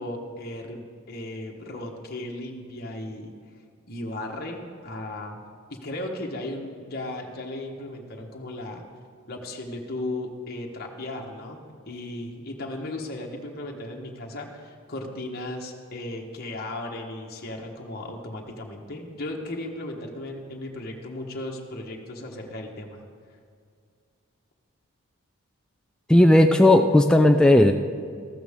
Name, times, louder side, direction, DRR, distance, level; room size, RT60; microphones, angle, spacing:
voice 1, 0.0-3.3 3.9-5.4 5.7-8.8 9.3-23.0, left 1 dB, 45° left, 0 dB, 1.3 m, -36 dB
voice 2, 26.1-27.7, left 1 dB, 5° left, 3 dB, 0.3 m, -15 dB
14.0 x 13.0 x 3.6 m, 2.2 s
head